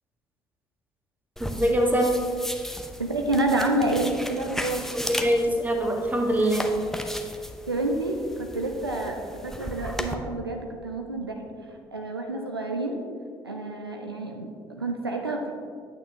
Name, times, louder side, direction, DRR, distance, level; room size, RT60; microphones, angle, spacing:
sound 1, 1.4-10.1, equal, 5° left, 0.6 m, -36 dB
voice 1, 1.4-2.1 4.9-6.7, equal, 15° right, 1 dB, 1.4 m, -23 dB
voice 2, 3.0-4.8 7.7-11.4 11.9-13.0 13.4-15.5, right 2 dB, 90° right, 2 dB, 0.4 m, -28 dB
8.7 x 8.3 x 2.8 m, 2.2 s
figure-of-eight pair, 45°, 12 cm